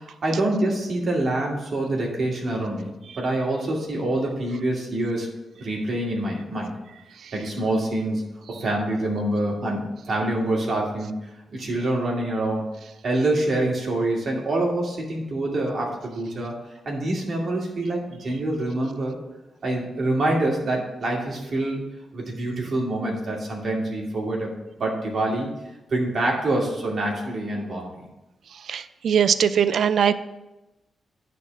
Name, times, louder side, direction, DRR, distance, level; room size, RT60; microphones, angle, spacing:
voice 1, 0.0-2.9 3.2-5.3 5.6-6.7 7.3-11.2 11.5-12.7 13.0-16.5 16.9-19.2 19.6-21.8 22.1-24.5 24.8-25.5 25.9-28.0, right 1 dB, 55° right, -2 dB, 2.4 m, -26 dB
voice 2, 28.7-30.1, right 8 dB, 75° right, 13 dB, 0.4 m, -20 dB
10.0 x 4.3 x 6.5 m, 0.99 s
cardioid pair, 95°, 0 cm